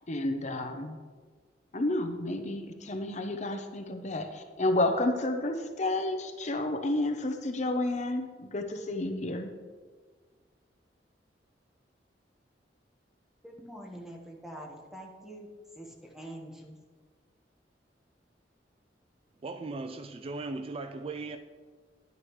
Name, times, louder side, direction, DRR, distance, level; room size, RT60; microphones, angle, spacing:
voice 1, 0.1-1.0 1.7-9.5, left 2 dB, 40° left, 0.7 m, -31 dB
voice 2, 13.4-16.8, right 1 dB, ahead, 1.3 m, -45 dB
voice 3, 19.4-21.4, right 3 dB, 35° right, 0.3 m, -37 dB
10.5 x 9.5 x 3.1 m
head